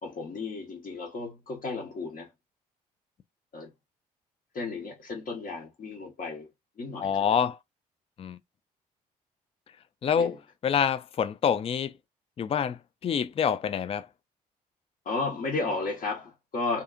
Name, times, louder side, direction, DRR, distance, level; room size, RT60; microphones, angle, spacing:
voice 1, 0.0-2.3 3.5-3.7 4.5-6.5 6.8-7.5 10.2-10.4 15.0-16.8, left 3 dB, 45° left, 0.9 m, -34 dB
voice 2, 7.0-7.6 8.2-8.4 10.0-10.3 10.6-11.9 12.4-12.8 13.0-14.1, left 7 dB, 30° left, 0.4 m, -26 dB
2.7 x 2.4 x 2.4 m
hypercardioid pair, 45°, 20 cm